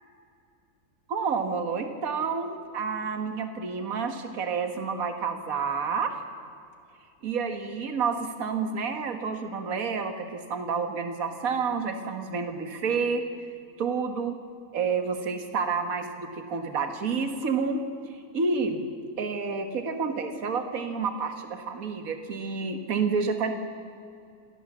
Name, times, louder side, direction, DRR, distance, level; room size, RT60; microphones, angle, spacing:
voice 1, 1.1-6.2 7.2-13.2 13.8-14.4 14.7-17.8 18.1-18.8 19.2-23.5, right 5 dB, 65° right, 6 dB, 2.0 m, -29 dB
27.0 x 19.0 x 7.4 m, 2.5 s
omnidirectional pair, 1.6 m